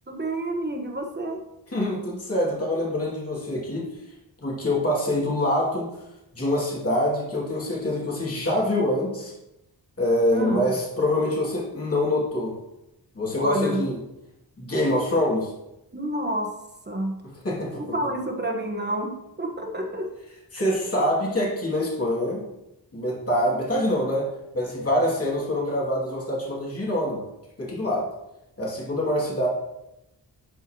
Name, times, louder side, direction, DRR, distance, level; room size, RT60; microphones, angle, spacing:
voice 1, 0.1-1.4 10.3-10.7 13.4-13.9 15.9-16.6 16.9-17.2 17.7-20.1, right 1 dB, 25° right, 2 dB, 1.3 m, -29 dB
voice 2, 1.7-3.8 4.4-5.9 6.3-9.3 10.0-12.5 13.1-13.9 14.6-15.5 17.4-17.9 20.5-22.4 22.9-24.3 24.5-27.2 27.6-28.1 28.6-29.5, left 1 dB, 35° left, -5 dB, 2.5 m, -25 dB
11.0 x 4.5 x 3.0 m, 0.89 s
wide cardioid pair, 80°, 42 cm